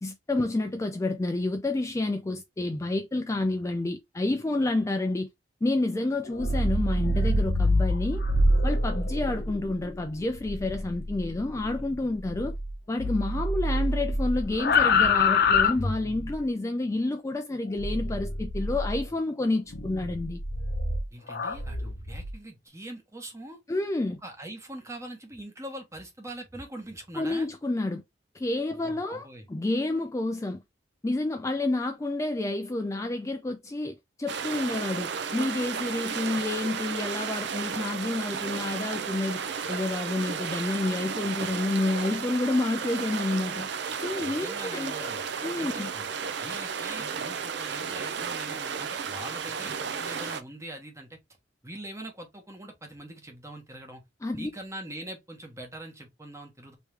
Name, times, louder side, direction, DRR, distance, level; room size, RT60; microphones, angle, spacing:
voice 1, 0.0-5.3 5.6-8.2 8.6-12.5 12.9-20.4 23.7-24.2 27.2-28.0 28.3-30.6 31.0-43.7 44.0-45.1 45.4-45.9 54.2-54.5, left 2 dB, 15° left, 0.4 m, -29 dB
sound 1, 6.2-12.7 13.0-16.4 17.8-19.0 19.7-22.3, left 2 dB, 60° left, 0.8 m, -26 dB
voice 2, 21.1-23.6 24.2-27.5 28.8-29.5 44.2-45.2 45.6-46.0 46.4-51.2 51.6-54.0 54.3-56.8, right 1 dB, 15° right, 1.1 m, -42 dB
sound 2, 34.3-50.4, right 6 dB, 65° right, 0.6 m, -33 dB
3.1 x 3.1 x 3.3 m
head